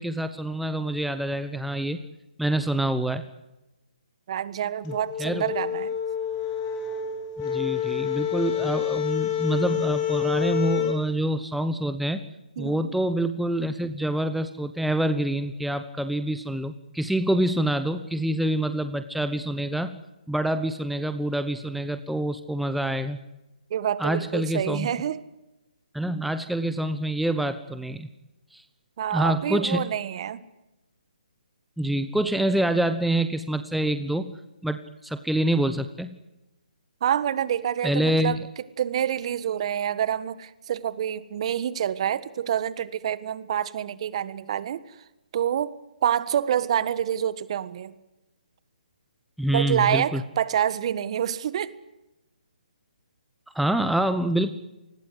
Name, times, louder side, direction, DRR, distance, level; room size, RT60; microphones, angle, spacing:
voice 1, 0.0-2.0 2.4-3.2 4.8-4.9 5.2-5.4 7.4-12.2 12.6-20.0 20.3-23.2 24.0-24.9 25.9-28.1 28.5-28.6 29.1-29.8 31.8-34.3 34.6-36.1 37.8-38.4 49.4-50.2 53.5-54.5, right 1 dB, ahead, 10 dB, 1.0 m, -26 dB
voice 2, 4.3-5.9 12.6-13.0 23.7-25.2 29.0-30.4 37.0-38.4 38.8-44.8 45.3-45.7 46.0-47.9 49.5-51.7, right 10 dB, 45° right, 16 dB, 1.6 m, -27 dB
sound 1, 4.8-11.0, left 9 dB, 25° left, 5.0 m, -28 dB
28.5 x 20.5 x 8.0 m, 0.99 s
figure-of-eight pair, 145°, 5 cm